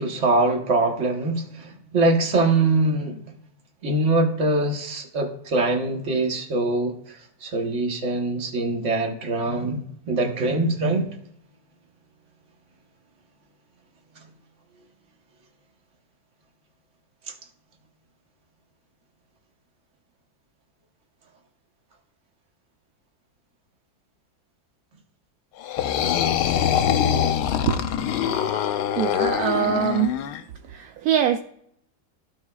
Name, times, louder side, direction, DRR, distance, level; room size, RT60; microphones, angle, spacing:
voice 1, 0.0-3.2 3.8-11.1, right 2 dB, 45° right, 1.4 m, -23 dB
sound 1, 25.6-30.4, left 9 dB, 75° left, 1.1 m, -23 dB
voice 2, 29.0-30.2 30.7-31.4, right 9 dB, 70° right, 0.9 m, -23 dB
15.0 x 5.5 x 2.3 m
omnidirectional pair, 1.9 m